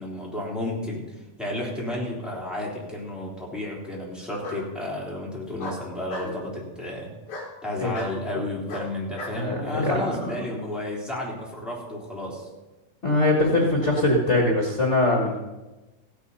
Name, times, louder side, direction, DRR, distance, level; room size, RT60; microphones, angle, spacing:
voice 1, 0.0-7.1 7.6-12.5, left 1 dB, ahead, -4 dB, 3.0 m, -32 dB
Bark, 2.2-2.9 4.4-4.6 5.6-6.3 7.3-7.5 7.9-8.1 8.7-9.4, left 1 dB, 60° left, 3.3 m, -36 dB
voice 2, 9.4-10.3 13.0-15.4, left 2 dB, 80° left, 0 dB, 0.6 m, -22 dB
15.5 x 9.2 x 5.6 m, 1.1 s
omnidirectional pair, 3.8 m